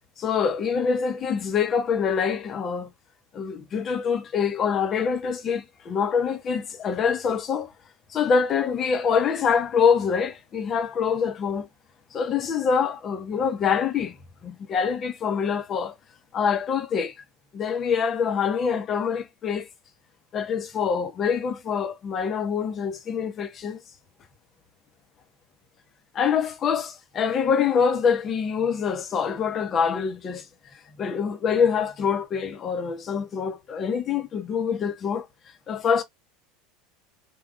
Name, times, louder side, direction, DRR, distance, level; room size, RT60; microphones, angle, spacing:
voice 1, 0.2-2.9 3.3-7.7 8.1-11.7 12.1-14.2 14.4-15.9 16.3-17.1 17.5-19.7 20.3-23.8 26.1-30.5 31.0-35.3 35.7-36.0, left 6 dB, 35° left, 1.1 m, -25 dB
3.6 x 2.7 x 2.4 m
figure-of-eight pair, 75°, 0 cm